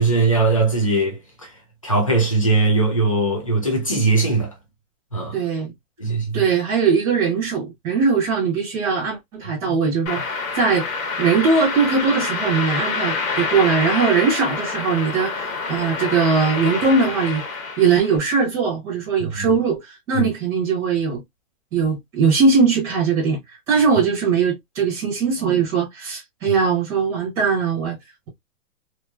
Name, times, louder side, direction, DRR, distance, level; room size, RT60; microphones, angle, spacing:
voice 1, 0.0-1.5 1.8-4.5 5.1-5.4 6.0-6.4 19.4-19.6 20.1-20.3, right 3 dB, 25° left, 0.4 m, -20 dB
voice 2, 5.3-5.7 6.3-10.9 11.2-17.4 17.8-21.2 21.7-23.4 23.7-28.0, right 5 dB, 5° right, 0.8 m, -20 dB
sound 1, 10.1-18.2, left 4 dB, 70° left, 1.5 m, -27 dB
3.0 x 2.6 x 2.3 m
hypercardioid pair, 180°, 43 cm